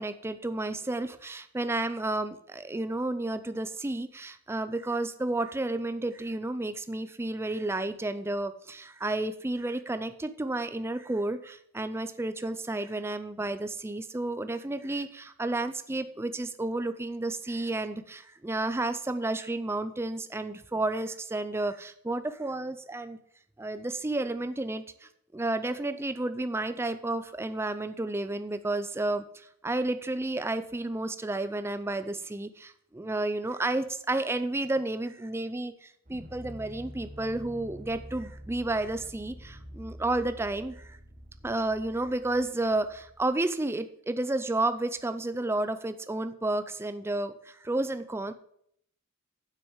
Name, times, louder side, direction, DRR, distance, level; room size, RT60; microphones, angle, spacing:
voice 1, 0.0-23.2 23.6-41.0 41.4-48.3, right 2 dB, 10° right, 11 dB, 0.4 m, -31 dB
sound 1, 36.1-43.3, equal, 35° right, 2.2 m, -47 dB
7.6 x 6.3 x 7.2 m, 0.68 s
head